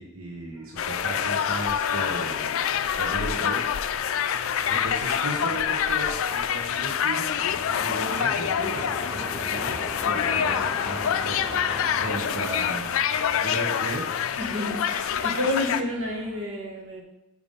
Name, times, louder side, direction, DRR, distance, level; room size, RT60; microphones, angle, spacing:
voice 1, 0.0-2.5 3.0-3.6 4.7-7.3 7.8-11.7 12.0-13.0 13.4-14.0, right 2 dB, 85° right, -2 dB, 1.1 m, -35 dB
sound 1, 0.6-16.4, equal, 5° left, 0.5 m, -43 dB
sound 2, 0.8-15.8, left 8 dB, 80° left, 0.4 m, -26 dB
voice 2, 14.4-17.0, left 1 dB, 65° right, -1 dB, 1.4 m, -29 dB
5.3 x 4.8 x 5.4 m, 0.94 s
head